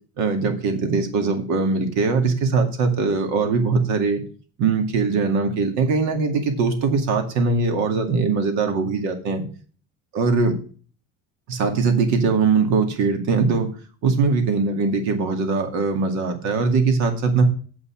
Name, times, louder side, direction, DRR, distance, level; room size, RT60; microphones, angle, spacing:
voice 1, 0.2-4.2 4.6-9.4 10.1-10.5 11.5-13.7 14.0-17.4, right 4 dB, 55° right, 6 dB, 2.3 m, -21 dB
7.7 x 5.5 x 7.3 m, 0.40 s
cardioid pair, 155°, 33 cm